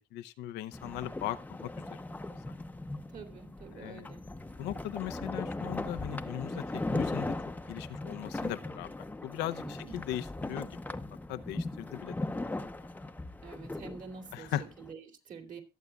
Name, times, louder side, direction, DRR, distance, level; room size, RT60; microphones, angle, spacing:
voice 1, 0.1-2.0 3.7-4.1 4.6-7.3 7.7-8.9 9.2-10.8 11.3-12.3 14.3-14.6, left 12 dB, 90° left, 10 dB, 0.7 m, -38 dB
sound 1, 0.7-14.9, left 2 dB, 10° left, 0.7 m, -38 dB
voice 2, 3.1-4.2 9.6-10.0 13.4-15.6, right 5 dB, 50° right, 6 dB, 3.0 m, -47 dB
22.5 x 8.2 x 2.4 m, 0.27 s
cardioid pair, 110°, 17 cm